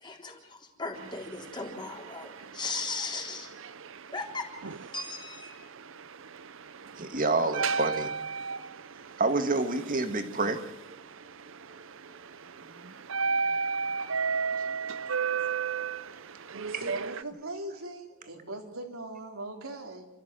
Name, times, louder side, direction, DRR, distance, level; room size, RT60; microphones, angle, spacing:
voice 1, 0.0-3.5 4.1-4.5 4.9-5.5, left 3 dB, 20° left, 1 dB, 3.7 m, -37 dB
sound 1, 0.9-17.2, right 5 dB, 65° right, 0.7 m, -35 dB
voice 2, 6.9-8.1 9.2-10.6 12.8-12.9, right 3 dB, 40° right, 8 dB, 1.8 m, -28 dB
voice 3, 16.8-20.1, right 2 dB, 85° right, 3 dB, 3.4 m, -40 dB
29.0 x 14.0 x 7.7 m, 0.98 s
head